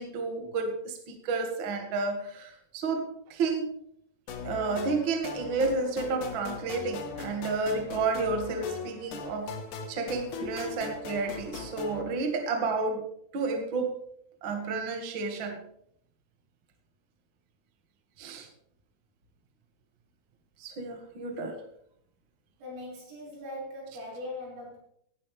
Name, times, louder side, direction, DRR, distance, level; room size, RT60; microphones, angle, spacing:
voice 1, 0.0-3.7 4.4-9.6 9.9-13.0 13.3-14.0 14.4-15.6 18.2-18.5 20.6-21.6, right 4 dB, 50° right, 4 dB, 1.5 m, -31 dB
sound 1, 4.3-12.0, left 5 dB, 65° left, 2.2 m, -40 dB
voice 2, 22.6-24.8, left 1 dB, 80° right, -5 dB, 7.8 m, -40 dB
18.0 x 11.5 x 3.4 m, 0.70 s
omnidirectional pair, 5.1 m